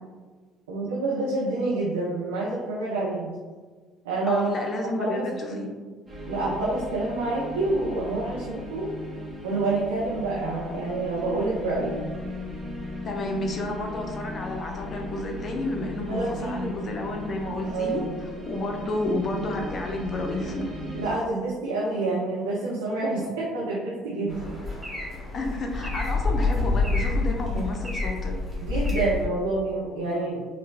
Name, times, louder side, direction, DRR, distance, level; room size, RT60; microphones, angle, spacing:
voice 1, 0.7-3.3 4.0-4.4 5.0-5.6 6.3-8.9 9.4-12.0 16.0-16.7 17.6-18.1 20.9-24.6 28.6-30.4, right 2 dB, 75° right, -6 dB, 0.5 m, -28 dB
voice 2, 4.3-5.8 13.0-18.1 18.5-20.7 25.3-28.4, left 1 dB, 40° left, 2 dB, 0.6 m, -30 dB
sound 1, 6.1-21.1, left 1 dB, 20° right, 0.9 m, -37 dB
sound 2, 24.3-29.3, left 3 dB, 5° right, 1.3 m, -27 dB
4.7 x 2.1 x 2.2 m, 1.4 s
figure-of-eight pair, 55°, 0 cm